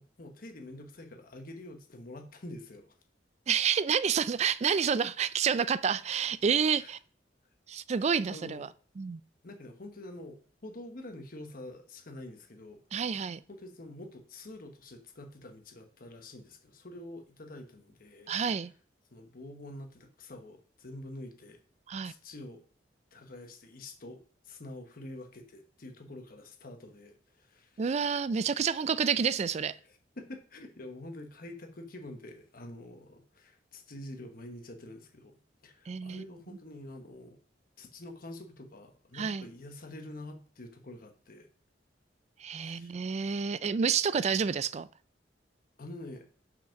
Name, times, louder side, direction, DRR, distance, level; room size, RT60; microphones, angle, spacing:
voice 1, 0.0-2.8 6.8-6.9 8.0-8.6 9.4-12.8 13.5-18.3 19.1-21.6 22.0-22.6 23.1-27.8 29.9-35.4 35.6-37.4 37.8-41.5 42.5-43.0 45.8-46.3, left 1 dB, 55° left, 1.2 m, -46 dB
voice 2, 3.5-7.0 7.7-8.7 9.0-9.2 12.9-13.4 18.3-18.7 21.9-22.1 27.8-29.8 35.9-36.3 39.1-39.4 42.4-44.9, right 6 dB, 40° right, 0.3 m, -29 dB
5.7 x 5.1 x 5.8 m
head